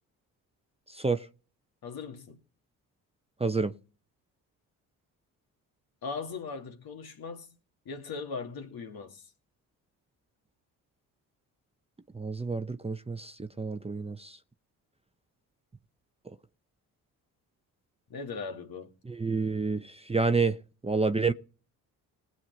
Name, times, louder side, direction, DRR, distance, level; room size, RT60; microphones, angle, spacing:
voice 1, 0.9-1.3 3.4-3.7 12.1-14.4 19.1-20.6 20.8-21.3, right 4 dB, 15° right, 0.9 m, -29 dB
voice 2, 1.8-2.4 6.0-7.5 7.9-9.3 18.1-18.9, left 4 dB, 55° left, 2.5 m, -39 dB
20.0 x 7.4 x 4.1 m
hypercardioid pair, 50°, 44 cm